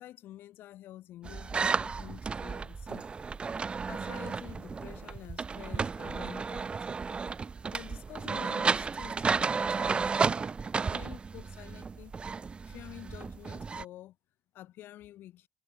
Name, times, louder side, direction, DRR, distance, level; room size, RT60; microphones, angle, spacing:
voice 1, 0.0-3.1 3.9-6.7 7.7-10.1 10.9-12.1 12.6-14.2 14.5-15.5, left 14 dB, 60° left, 5.9 m, -48 dB
sound 1, 1.2-13.8, right 5 dB, 25° right, 0.4 m, -33 dB
supercardioid pair, 80°, 4 cm